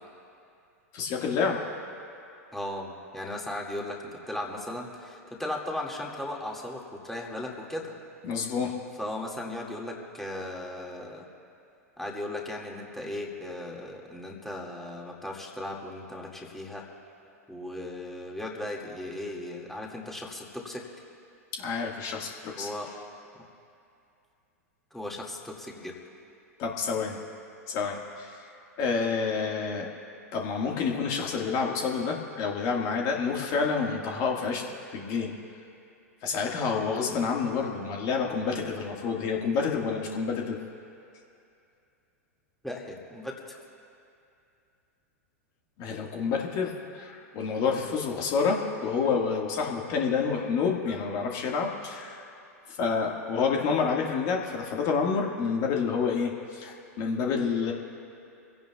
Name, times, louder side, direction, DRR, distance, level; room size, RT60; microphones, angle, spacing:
voice 1, 0.9-1.6 8.2-8.8 21.6-22.7 26.6-27.2 27.7-28.4 28.8-29.9 30.3-35.3 36.2-40.6 45.8-52.2 52.7-57.7, left 5 dB, 45° left, 0 dB, 1.7 m, -28 dB
voice 2, 2.5-4.0 4.3-7.9 9.0-11.2 12.0-16.9 17.5-20.9 22.5-22.9 23.3-23.4 24.9-26.0 42.6-43.6, left 1 dB, 5° left, -2 dB, 2.1 m, -37 dB
26.0 x 16.5 x 2.4 m, 2.6 s
hypercardioid pair, 100°, 8 cm